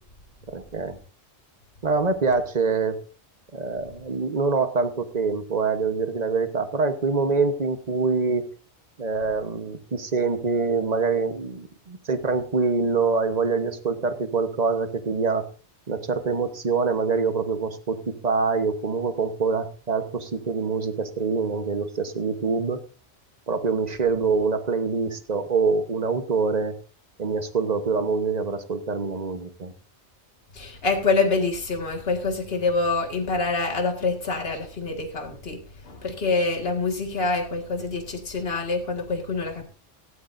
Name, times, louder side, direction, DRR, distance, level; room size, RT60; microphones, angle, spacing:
voice 1, 0.5-1.0 1.8-3.0 3.5-8.4 9.0-15.5 15.9-22.8 23.5-26.8 27.2-29.7, right 4 dB, 40° right, 9 dB, 1.2 m, -25 dB
voice 2, 30.6-35.6 35.9-39.6, left 3 dB, 60° left, 4 dB, 2.1 m, -26 dB
17.0 x 13.0 x 2.6 m, 0.37 s
omnidirectional pair, 1.2 m